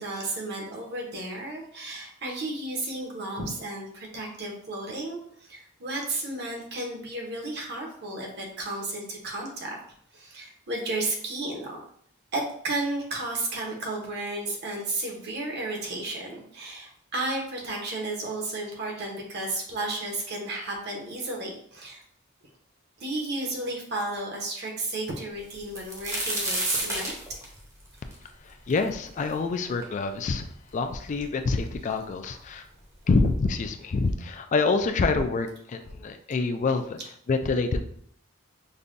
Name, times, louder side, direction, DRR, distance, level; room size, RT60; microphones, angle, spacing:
voice 1, 0.0-9.8 10.1-11.8 12.3-22.0 23.0-27.1, right 2 dB, 55° right, -1 dB, 0.9 m, -33 dB
sound 1, 25.5-29.3 29.8-29.9 30.7-30.8 31.0-31.7 32.6-32.7 33.1-33.3, right 1 dB, 15° right, 0.7 m, -31 dB
voice 2, 28.4-32.7 33.1-37.0 37.3-37.8, left 3 dB, 35° left, 7 dB, 0.3 m, -26 dB
5.3 x 2.2 x 2.5 m, 0.65 s
head